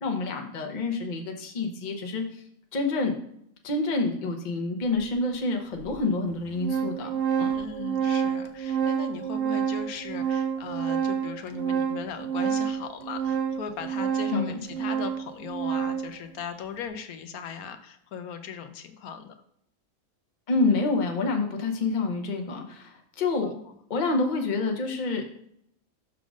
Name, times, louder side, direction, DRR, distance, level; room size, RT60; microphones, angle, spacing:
voice 1, 0.0-2.2 2.7-3.1 3.6-7.1 7.4-7.5 14.3-14.6 20.5-23.5 23.9-25.4, left 3 dB, 35° left, 3 dB, 0.9 m, -27 dB
Organ, 4.9-5.0 5.9-6.0 6.3-16.2, right 7 dB, 60° right, 1.0 m, -29 dB
voice 2, 7.5-19.4 23.4-23.7, left 7 dB, 80° left, 8 dB, 1.1 m, -38 dB
6.1 x 3.7 x 6.1 m, 0.73 s
omnidirectional pair, 1.5 m